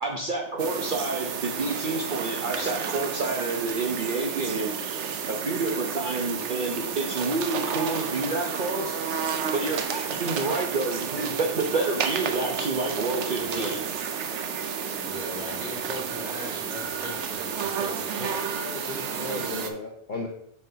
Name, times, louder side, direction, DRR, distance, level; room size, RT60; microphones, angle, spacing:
voice 1, 0.0-4.7 5.3-9.0 9.5-13.9, right 3 dB, 50° right, 0 dB, 0.8 m, -29 dB
sound 1, 0.6-19.7, right 7 dB, 80° right, 1.0 m, -31 dB
voice 2, 13.3-13.8 15.0-18.7 19.2-19.7, left 2 dB, 5° right, -6 dB, 2.5 m, -40 dB
voice 3, 18.6-20.3, left 3 dB, 50° left, 0 dB, 0.8 m, -35 dB
7.3 x 5.6 x 2.7 m, 0.70 s
omnidirectional pair, 1.2 m